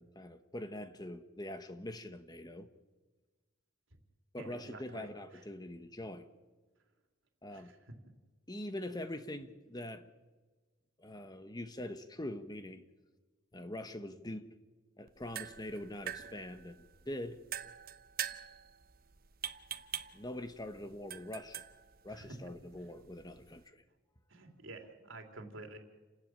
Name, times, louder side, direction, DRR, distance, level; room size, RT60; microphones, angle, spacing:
voice 1, 0.0-2.7 4.3-6.3 7.4-7.7 8.5-10.1 11.0-12.8 13.5-14.5 15.0-17.4 20.1-21.6 22.0-23.8, left 1 dB, 20° left, 1.1 m, -43 dB
voice 2, 4.4-5.1 7.5-7.8 22.1-22.4 24.3-25.8, right 2 dB, 80° right, 3.4 m, -49 dB
sound 1, 15.1-23.7, right 10 dB, 45° right, 1.0 m, -45 dB
29.0 x 13.0 x 9.0 m
head